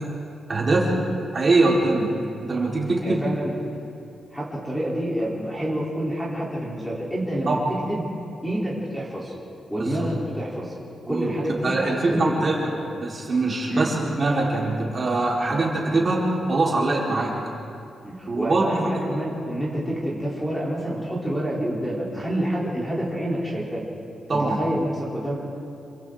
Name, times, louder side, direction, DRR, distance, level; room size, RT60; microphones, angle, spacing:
voice 1, 0.5-0.9 1.3-2.1 2.4-3.3 7.5-7.6 9.8-10.0 11.1-12.6 13.0-17.3 18.3-19.0 24.3-24.6, right 2 dB, 30° right, -4 dB, 3.9 m, -23 dB
voice 2, 3.0-3.5 4.3-7.6 7.9-8.1 8.4-9.3 9.7-10.7 11.1-12.8 13.7-13.9 15.4-15.6 18.0-23.8 24.3-25.4, right 1 dB, 5° left, -5 dB, 3.3 m, -28 dB
28.0 x 25.0 x 3.7 m, 2.7 s
wide cardioid pair, 175°, 0 cm